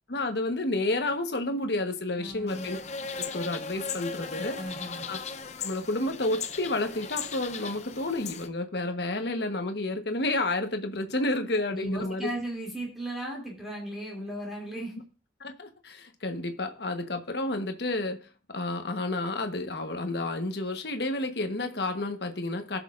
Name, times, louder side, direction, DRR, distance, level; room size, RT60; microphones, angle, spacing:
voice 1, 0.1-2.8 3.2-4.6 5.1-5.2 5.6-12.3 15.4-22.8, left 2 dB, 65° left, 6 dB, 1.2 m, -30 dB
voice 2, 2.1-2.8 4.3-5.1 11.7-14.9, right 1 dB, ahead, -3 dB, 2.7 m, -36 dB
sound 1, 2.5-8.5, left 5 dB, 40° left, 0.7 m, -37 dB
19.5 x 6.6 x 2.5 m, 0.36 s
head